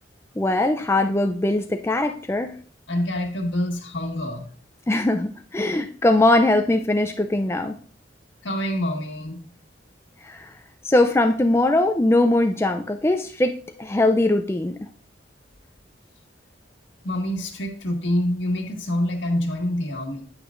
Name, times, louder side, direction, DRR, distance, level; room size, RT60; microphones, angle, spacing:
voice 1, 0.4-2.6 4.9-7.8 10.2-10.5 10.9-14.8, left 2 dB, 15° left, 6 dB, 0.4 m, -21 dB
voice 2, 2.9-4.4 8.4-9.4 17.0-20.2, left 1 dB, 80° left, 3 dB, 1.6 m, -26 dB
9.0 x 9.0 x 2.5 m, 0.43 s
head